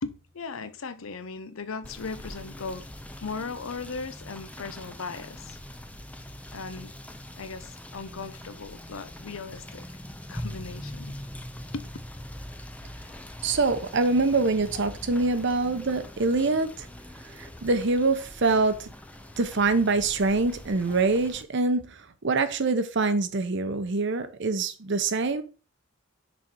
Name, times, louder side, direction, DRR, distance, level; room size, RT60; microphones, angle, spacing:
voice 1, 0.0-2.8 3.2-5.6 6.5-6.9 7.4-9.8 10.3-11.2 11.7-11.8, left 4 dB, 90° left, 0.7 m, -37 dB
Rain / Motor vehicle (road), 1.8-21.4, left 1 dB, 5° left, 0.5 m, -43 dB
voice 2, 13.4-16.9 17.4-18.9 19.4-25.4, right 3 dB, 60° right, 0.8 m, -25 dB
6.4 x 4.3 x 4.3 m
head